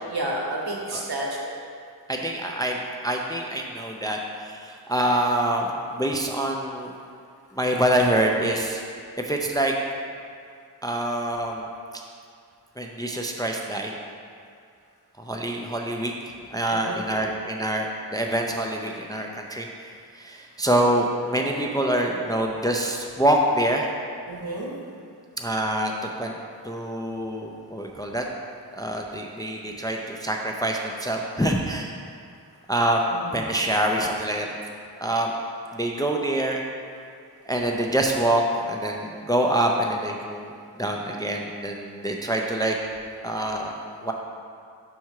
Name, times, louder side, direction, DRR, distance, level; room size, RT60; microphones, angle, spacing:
voice 1, 0.1-1.5 16.7-17.0 24.3-24.7 33.1-33.4, right 1 dB, 60° right, -2 dB, 1.1 m, -30 dB
voice 2, 2.1-6.9 7.5-8.8 9.3-9.7 10.8-11.7 12.8-13.9 15.2-16.1 16.5-19.9 20.2-23.9 25.4-26.3 26.6-28.3 28.8-32.0 32.7-33.0 33.3-34.5 35.0-35.3 35.7-36.6 37.5-42.8 43.2-43.7 44.0-44.1, right 1 dB, 10° left, 1 dB, 0.4 m, -25 dB
5.6 x 4.6 x 4.7 m, 2.3 s
wide cardioid pair, 40°, 41 cm